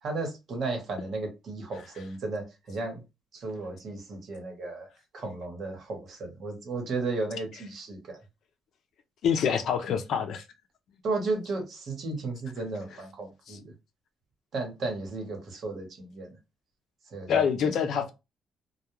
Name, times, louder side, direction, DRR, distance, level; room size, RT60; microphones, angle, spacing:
voice 1, 0.0-3.0 3.3-4.9 5.1-8.2 11.0-13.7 14.5-16.4 17.1-17.8, right 3 dB, 55° right, 1.1 m, -34 dB
voice 2, 9.2-10.4 13.5-13.6 17.3-18.1, left 7 dB, 70° left, 0.5 m, -26 dB
2.3 x 2.2 x 3.0 m
cardioid pair, 105°, 0 cm